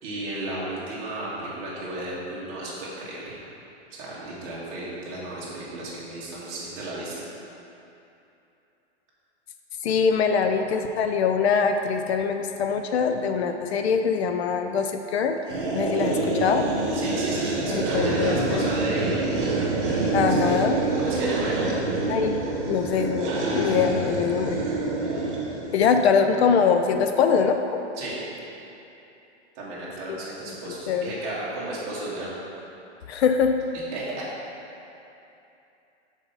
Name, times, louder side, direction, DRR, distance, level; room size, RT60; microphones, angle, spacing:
voice 1, 0.0-3.4 3.9-7.1 15.9-16.5 16.9-19.3 20.3-20.5 21.0-21.6 28.0-28.2 29.5-32.3 33.9-34.2, right 1 dB, 25° right, -7 dB, 1.4 m, -34 dB
voice 2, 9.8-15.4 15.7-16.7 17.7-18.6 20.1-20.8 22.1-22.4 22.7-24.6 25.7-27.8 30.1-30.2 30.7-31.1 33.1-33.6, left 6 dB, 65° left, 6 dB, 0.5 m, -23 dB
sound 1, 15.5-25.9, right 2 dB, 50° right, 1.3 m, -26 dB
5.9 x 4.4 x 5.5 m, 2.8 s
supercardioid pair, 170°, 35 cm